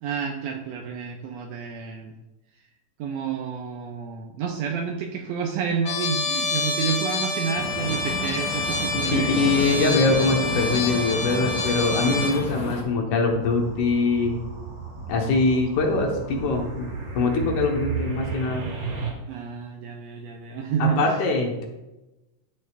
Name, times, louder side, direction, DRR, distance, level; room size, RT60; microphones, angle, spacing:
voice 1, 0.0-2.1 3.0-9.8 19.3-21.1, right 7 dB, 85° right, 2 dB, 1.5 m, -29 dB
Trumpet, 5.8-12.4, left 3 dB, 55° left, 2.0 m, -28 dB
sound 1, 7.5-12.8, left 1 dB, 35° left, 1.6 m, -32 dB
voice 2, 8.9-14.4 15.1-16.9 17.1-18.7 20.8-21.6, left 3 dB, 70° left, 1 dB, 2.5 m, -23 dB
sound 2, 13.4-19.1, right 5 dB, 45° right, 1.2 m, -33 dB
12.0 x 6.5 x 2.4 m, 0.99 s
omnidirectional pair, 3.8 m